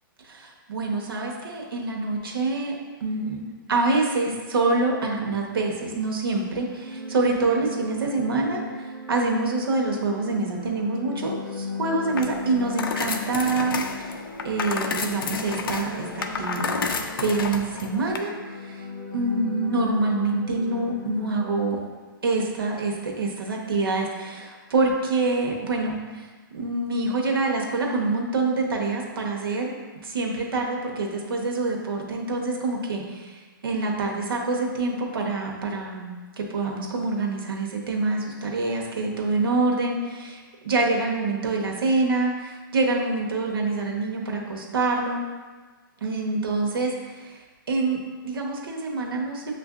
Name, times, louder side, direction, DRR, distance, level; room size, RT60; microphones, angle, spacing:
voice 1, 0.2-8.6 9.1-14.1 14.4-16.8 17.2-18.8 19.1-21.8 22.2-26.3 26.5-29.7 30.0-45.2 46.0-47.4 47.7-49.6, right 3 dB, 80° right, 0 dB, 0.9 m, -26 dB
sound 1, 6.4-22.1, left 3 dB, 5° left, 1.2 m, -37 dB
sound 2, 12.1-18.2, left 5 dB, 75° left, 0.4 m, -31 dB
7.1 x 2.5 x 2.4 m, 1.4 s
hypercardioid pair, 170°, 12 cm